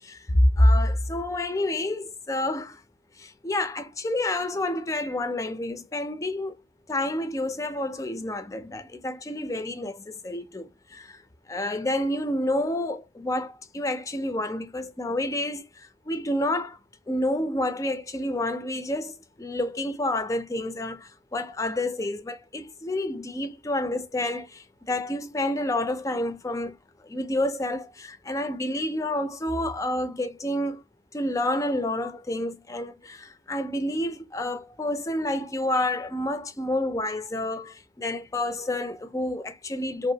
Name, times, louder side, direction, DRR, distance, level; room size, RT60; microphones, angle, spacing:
voice 1, 0.0-2.8 3.2-6.5 6.9-11.2 11.5-16.8 17.1-26.8 27.0-30.8 31.1-40.1, left 1 dB, 20° left, 0.4 m, -28 dB
2.8 x 2.4 x 2.7 m
head